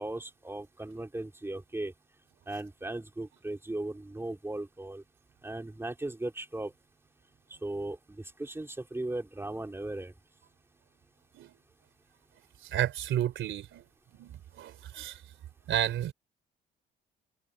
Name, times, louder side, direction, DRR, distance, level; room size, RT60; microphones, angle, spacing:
voice 1, 0.0-1.9 2.5-5.0 5.4-6.7 7.6-10.1, right 2 dB, 10° right, 3.5 m, -37 dB
voice 2, 12.6-13.8 14.2-15.2 15.7-16.1, right 11 dB, 80° right, 3.2 m, -32 dB
cardioid pair, 90°, 20 cm